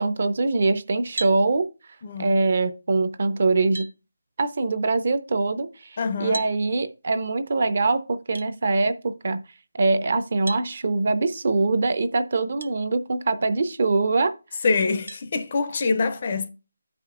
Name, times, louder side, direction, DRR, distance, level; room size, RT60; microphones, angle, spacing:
voice 1, 0.0-1.6 2.2-3.9 4.4-9.4 9.8-14.3, right 3 dB, 35° right, 0.5 m, -23 dB
sound 1, 1.2-1.4 3.1-3.2 3.7-4.0 6.3-6.6 8.3-8.5 10.5-10.7 12.6-12.7 13.4-13.5 15.1-15.3, right 3 dB, 80° right, 0.5 m, -34 dB
voice 2, 2.0-2.3 6.0-6.4 14.6-16.5, left 4 dB, 25° left, 0.4 m, -25 dB
12.5 x 5.0 x 2.4 m
figure-of-eight pair, 180°, 0 cm